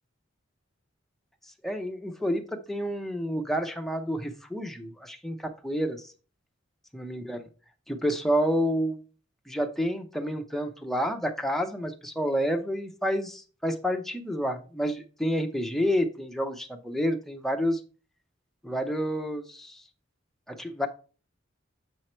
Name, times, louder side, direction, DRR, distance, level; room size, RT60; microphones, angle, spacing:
voice 1, 1.6-6.1 6.9-7.4 7.9-9.0 9.5-17.8 18.6-19.8 20.5-20.9, equal, ahead, 4 dB, 0.8 m, -29 dB
7.6 x 4.7 x 4.4 m, 0.36 s
head